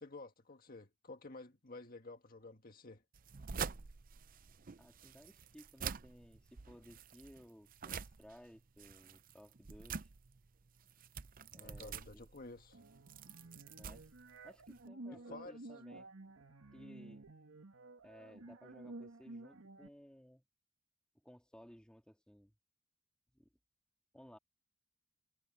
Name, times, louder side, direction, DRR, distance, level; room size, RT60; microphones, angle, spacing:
voice 1, 0.0-3.0 11.6-12.8 15.1-15.6, left 2 dB, 45° left, 1.8 m, -51 dB
sound 1, 3.1-14.9, right 6 dB, 45° right, 0.6 m, -47 dB
voice 2, 4.8-10.1 11.5-12.3 13.8-14.1 14.4-16.1 16.7-17.2 18.0-20.4 21.2-22.5 23.3-23.5 24.1-24.4, equal, 5° left, 2.7 m, -59 dB
sound 2, 12.7-19.9, right 2 dB, 85° right, 1.8 m, -53 dB
head